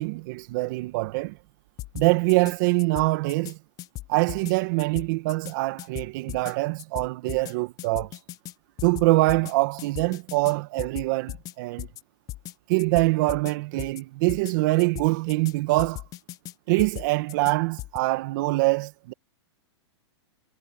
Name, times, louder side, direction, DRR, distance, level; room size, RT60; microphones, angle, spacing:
voice 1, 0.0-1.4 1.9-3.6 4.1-8.1 8.8-11.9 12.7-16.0 16.7-19.1, right 23 dB, 45° right, 1.6 m, -24 dB
sound 1, 1.8-2.5 2.8-3.5 3.8-4.5 4.8-5.5 5.8-6.5 6.8-7.5 7.8-8.5 8.8-9.5 9.8-10.5 10.8-11.5 11.8-12.0 12.3-12.5 12.8-13.5 13.8-14.0 14.3-14.5 14.8-15.5 15.8-16.5 16.8-17.5 17.8-18.0, left 15 dB, 25° left, 0.9 m, -38 dB
hypercardioid pair, 150°, 15 cm